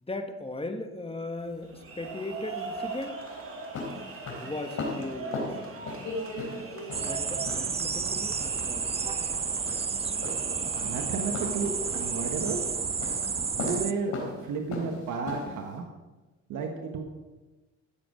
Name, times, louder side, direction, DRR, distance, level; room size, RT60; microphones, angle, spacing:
voice 1, 0.1-3.2 4.4-5.8 7.0-9.2, left 2 dB, 20° left, 6 dB, 1.5 m, -38 dB
sound 1, 1.4-15.8, left 3 dB, 70° left, 3.9 m, -39 dB
sound 2, 1.6-12.7, right 4 dB, 45° right, 2.4 m, -42 dB
sound 3, 6.9-13.9, right 5 dB, 20° right, 0.4 m, -31 dB
voice 2, 10.8-12.6 13.6-15.8 16.5-17.0, right 4 dB, 85° right, 3 dB, 1.4 m, -32 dB
16.0 x 7.5 x 5.1 m, 1.2 s
cardioid pair, 90°, 30 cm